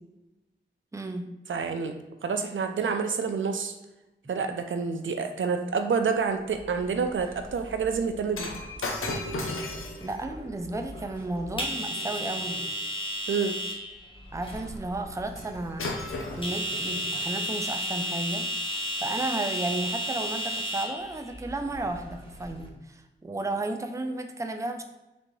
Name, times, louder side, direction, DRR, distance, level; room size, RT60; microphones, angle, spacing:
voice 1, 0.9-1.3 10.0-12.6 14.3-15.9 16.3-24.8, right 2 dB, 15° right, 6 dB, 0.4 m, -33 dB
voice 2, 1.5-3.7 4.3-8.6 13.3-13.5, right 5 dB, 70° right, 7 dB, 0.4 m, -28 dB
sound 1, 6.6-22.7, equal, 25° left, 0.9 m, -35 dB
Shatter, 8.3-12.7 15.4-15.5 15.8-17.3 18.0-18.2, left 2 dB, 85° left, 0.6 m, -36 dB
4.0 x 3.3 x 3.1 m, 1.0 s
wide cardioid pair, 55°, 21 cm